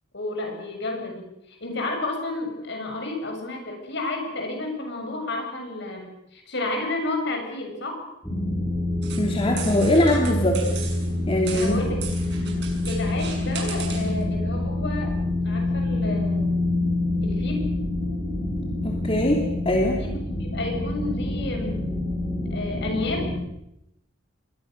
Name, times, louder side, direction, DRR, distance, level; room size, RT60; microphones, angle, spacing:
voice 1, 0.1-8.0 11.5-12.0 12.9-15.1 15.4-16.7 17.2-17.7 20.1-21.8 22.5-23.4, left 2 dB, 60° left, 3 dB, 7.3 m, -31 dB
sound 1, 8.2-23.4, left 2 dB, 10° left, 6.0 m, -27 dB
sound 2, 9.0-14.2, right 7 dB, 60° right, 6.6 m, -38 dB
voice 2, 9.2-10.6 11.3-11.8 12.0-12.1 18.8-20.0, left 1 dB, 30° left, 0 dB, 2.9 m, -22 dB
28.0 x 22.0 x 6.6 m, 0.83 s
head